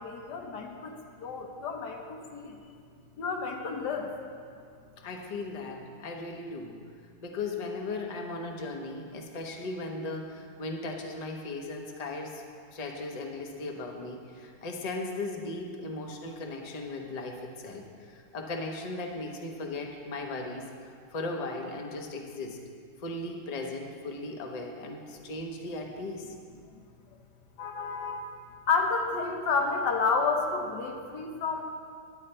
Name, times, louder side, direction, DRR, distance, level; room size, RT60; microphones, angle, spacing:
voice 1, 0.0-2.6 3.2-4.1 27.6-28.3 28.7-31.6, left 4 dB, 90° left, 2 dB, 1.6 m, -30 dB
voice 2, 5.0-6.7 7.2-12.4 12.7-17.8 18.1-22.6 23.0-26.3, left 2 dB, 30° left, 2 dB, 0.8 m, -37 dB
9.8 x 9.7 x 4.3 m, 2.2 s
omnidirectional pair, 1.7 m